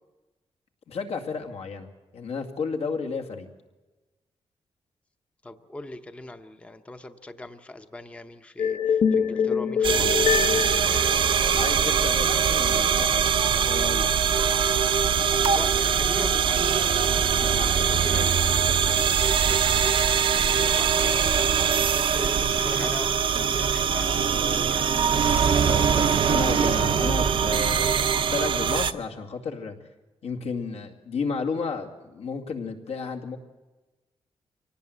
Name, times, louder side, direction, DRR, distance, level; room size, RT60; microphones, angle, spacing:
voice 1, 0.9-1.9 2.1-3.5 11.5-14.1 17.4-17.8 18.1-18.5 25.7-29.8 30.2-33.4, left 5 dB, 75° left, 4 dB, 2.3 m, -33 dB
voice 2, 5.4-10.3 15.5-17.0 17.4-18.2 18.7-19.9 20.5-24.9, left 1 dB, 10° left, 8 dB, 0.8 m, -40 dB
sound 1, 8.6-11.9, left 7 dB, 60° left, 1.3 m, -25 dB
sound 2, 9.8-28.9, right 7 dB, 50° right, 0.7 m, -22 dB
24.5 x 18.5 x 8.1 m, 1.1 s
wide cardioid pair, 170°, 11 cm